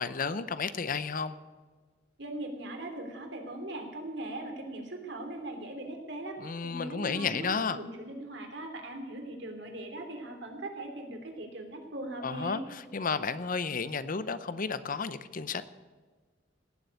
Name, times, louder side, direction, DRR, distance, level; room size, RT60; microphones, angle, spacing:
voice 1, 0.0-1.4 6.4-7.8 12.2-15.6, left 5 dB, 50° left, 14 dB, 0.7 m, -32 dB
voice 2, 2.2-6.4 6.6-12.6, right 1 dB, 70° right, 3 dB, 3.0 m, -40 dB
17.5 x 7.7 x 8.2 m, 1.4 s
head